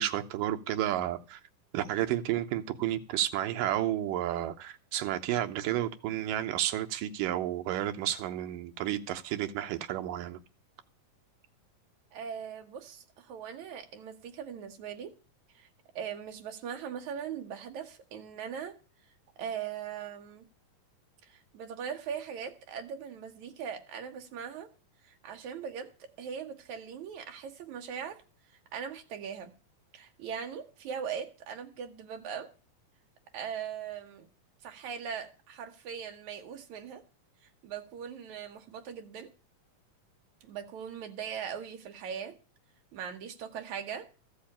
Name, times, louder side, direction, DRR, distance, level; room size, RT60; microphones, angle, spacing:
voice 1, 0.0-1.4 1.7-10.4, right 12 dB, 80° right, 2.5 m, -31 dB
voice 2, 12.1-15.1 15.5-15.7 16.0-18.8 19.4-20.5 21.2-24.7 25.0-28.2 28.7-29.5 29.9-32.5 33.3-34.3 34.6-37.0 37.6-39.3 40.4-42.3 42.9-44.1, right 7 dB, 65° right, 2.6 m, -40 dB
14.0 x 5.7 x 8.6 m
omnidirectional pair, 3.8 m